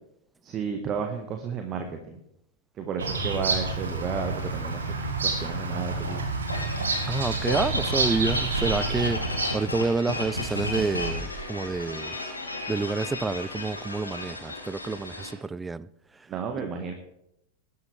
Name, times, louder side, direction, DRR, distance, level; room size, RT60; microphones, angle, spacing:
voice 1, 0.4-2.2 2.8-4.9 5.2-6.2 16.3-16.9, right 6 dB, 30° right, 1.6 m, -32 dB
Bird vocalization bird call bird song, 3.0-9.8, right 3 dB, 70° right, 2.1 m, -29 dB
sound 1, 3.6-6.1 6.4-9.0 9.3-12.1 12.8-13.2, right 2 dB, 55° right, 3.6 m, -43 dB
sound 2, 6.5-15.3, left 2 dB, 80° left, 2.4 m, -33 dB
voice 2, 7.1-9.2 9.5-12.2 12.7-15.9, right 3 dB, 10° right, 0.4 m, -28 dB
21.0 x 11.0 x 3.5 m
figure-of-eight pair, 90°, 0 cm